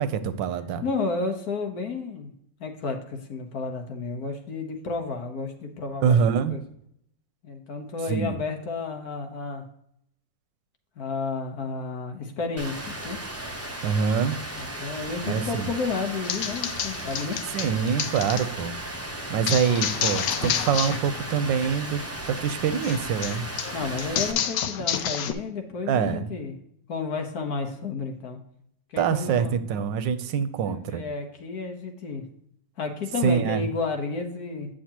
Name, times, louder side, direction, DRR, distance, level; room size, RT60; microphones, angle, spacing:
voice 1, 0.0-0.8 6.0-6.6 8.1-8.4 13.8-14.4 15.2-15.7 17.5-18.7 19.3-22.0 22.3-23.4 25.9-26.3 29.0-31.0 33.2-33.6, right 7 dB, 85° right, 12 dB, 1.4 m, -25 dB
voice 2, 0.8-2.3 2.6-6.6 7.4-9.6 11.0-13.2 14.6-17.4 23.7-26.5 26.9-28.4 28.9-29.6 30.6-32.2 32.8-34.7, left 4 dB, 60° left, 5 dB, 1.5 m, -31 dB
Rain, 12.6-24.3, right 1 dB, 15° right, 0.5 m, -36 dB
sound 1, 16.2-18.4 19.5-21.0 21.3-21.7 22.8-25.3, left 9 dB, 80° left, 1.3 m, -29 dB
8.8 x 7.1 x 2.9 m, 0.72 s
omnidirectional pair, 1.9 m